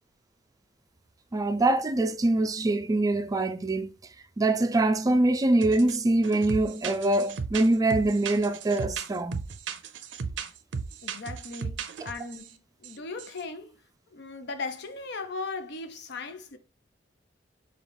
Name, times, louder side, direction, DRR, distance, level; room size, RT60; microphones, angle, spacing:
voice 1, 1.3-3.9 4.4-9.4, right 2 dB, 20° right, 0.3 m, -24 dB
sound 1, 5.6-6.0 6.2-12.5 12.8-12.9 13.2-13.4, right 5 dB, 80° right, 0.5 m, -36 dB
voice 2, 11.0-12.5 12.8-13.8 14.1-16.6, left 3 dB, 65° left, 0.6 m, -37 dB
5.0 x 2.3 x 3.4 m
head